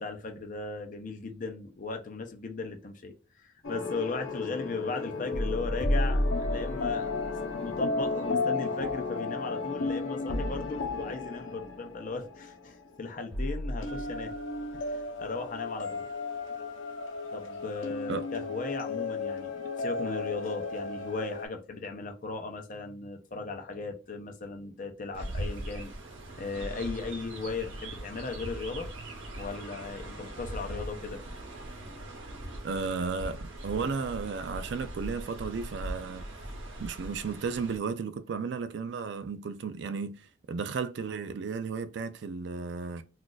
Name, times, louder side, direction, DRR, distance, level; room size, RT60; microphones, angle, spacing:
voice 1, 0.0-7.1 7.4-14.3 14.7-16.0 17.3-25.9 26.4-28.9 29.4-31.2, left 4 dB, 40° left, 0.5 m, -37 dB
sound 1, 3.6-13.0 13.3-21.5, left 2 dB, 80° left, 0.7 m, -33 dB
Chirp tweet, 25.1-37.8, right 1 dB, 80° right, 0.8 m, -40 dB
voice 2, 32.6-36.2 36.8-43.0, right 5 dB, 65° right, 0.3 m, -34 dB
2.4 x 2.3 x 3.8 m
head